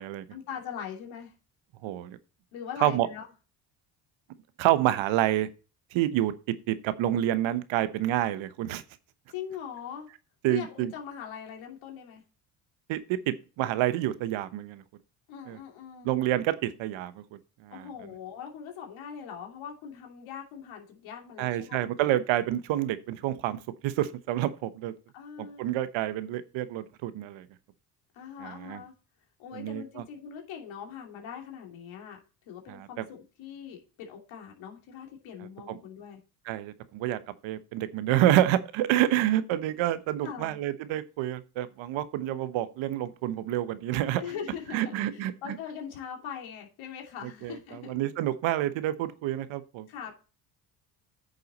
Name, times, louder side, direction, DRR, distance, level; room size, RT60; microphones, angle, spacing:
voice 1, 0.3-1.3 2.5-3.3 9.3-10.1 10.5-12.2 15.3-16.1 17.7-21.9 25.1-25.6 28.1-28.9 29.4-32.2 32.5-36.2 40.2-40.6 44.2-47.9 49.9-50.1, left 8 dB, 70° left, 3.0 m, -41 dB
voice 2, 1.8-2.2 2.8-3.1 4.6-5.5 5.9-8.8 10.4-10.9 12.9-14.8 15.5-15.6 16.0-17.8 21.4-24.9 25.4-27.5 28.4-28.8 29.5-30.0 32.7-32.9 35.7-35.8 36.5-44.2 44.7-45.3 47.4-47.6 47.9-49.9, right 13 dB, 70° right, 1.1 m, -28 dB
9.5 x 6.6 x 4.2 m
hypercardioid pair, 65°, 48 cm